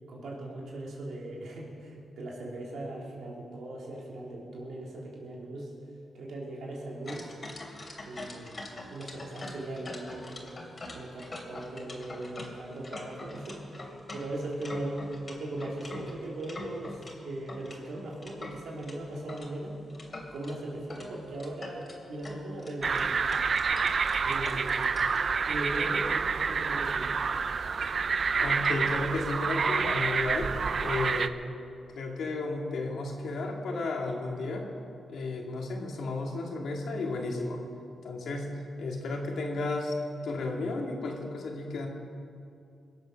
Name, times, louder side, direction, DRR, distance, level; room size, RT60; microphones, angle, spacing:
voice 1, 0.1-5.7 6.1-7.3 8.1-8.5 8.9-10.5 10.9-19.8 20.3-23.1 24.2-24.8 25.5-27.2, right 1 dB, 75° right, -3 dB, 3.7 m, -39 dB
sound 1, 7.1-17.1 17.5-19.5 19.9-20.5 20.9-21.1 21.3-25.2, left 2 dB, 35° left, 2.9 m, -43 dB
sound 2, 22.8-31.3, right 5 dB, 55° right, 0.6 m, -28 dB
voice 2, 28.4-31.3 31.9-34.7 35.1-37.7 38.0-38.5 38.8-39.9 40.2-41.9, left 2 dB, 75° left, 1 dB, 2.2 m, -33 dB
22.0 x 7.9 x 6.4 m, 2.5 s
cardioid pair, 70°, 0 cm